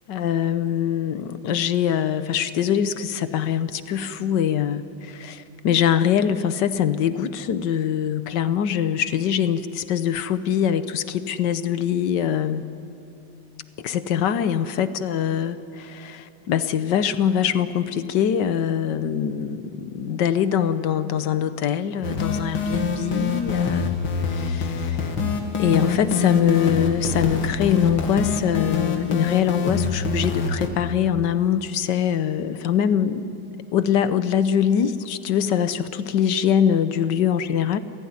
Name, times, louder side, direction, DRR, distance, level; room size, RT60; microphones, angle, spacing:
voice 1, 0.1-12.7 13.8-24.0 24.2-25.1 25.6-33.4 33.7-37.8, left 9 dB, 65° left, 12 dB, 1.4 m, -23 dB
sound 1, 22.0-30.7, left 4 dB, 80° left, 2.8 m, -25 dB
28.5 x 16.0 x 9.7 m, 2.8 s
omnidirectional pair, 2.2 m